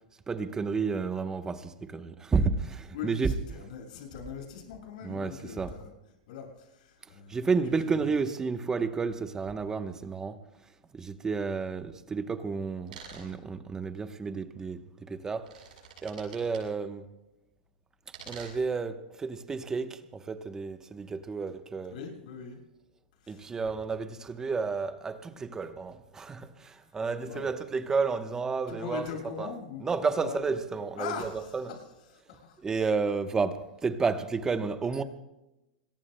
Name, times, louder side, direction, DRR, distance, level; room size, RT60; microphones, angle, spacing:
voice 1, 0.3-3.3 5.0-5.7 7.3-10.4 10.9-15.5 16.0-17.1 18.3-21.9 23.3-29.1 29.4-29.5 29.8-31.7 32.6-35.0, right 4 dB, 15° right, 0.9 m, -31 dB
voice 2, 2.9-5.9 6.3-7.4 8.0-8.1 21.9-22.6 23.2-23.4 27.2-27.5 28.7-30.4 31.0-31.8 32.1-32.6, left 7 dB, 65° left, 6.8 m, -41 dB
sound 1, 12.9-13.3 15.2-16.6 18.1-18.7, right 5 dB, 85° right, 7.4 m, -47 dB
27.0 x 22.0 x 2.2 m
supercardioid pair, 145°, 5 cm